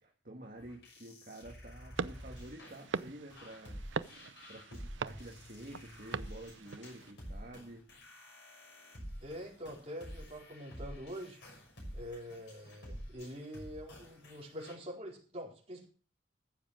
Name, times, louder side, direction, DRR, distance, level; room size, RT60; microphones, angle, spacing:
voice 1, 0.0-3.8 4.5-7.9, right 1 dB, 50° right, -1 dB, 1.9 m, -50 dB
sound 1, 0.6-14.7, equal, 70° left, 6.1 m, -49 dB
sound 2, 2.0-7.1, right 5 dB, 75° right, 0.6 m, -42 dB
voice 2, 9.2-11.4 11.9-15.9, equal, 35° right, -3 dB, 4.6 m, -45 dB
15.0 x 7.2 x 6.4 m, 0.40 s
head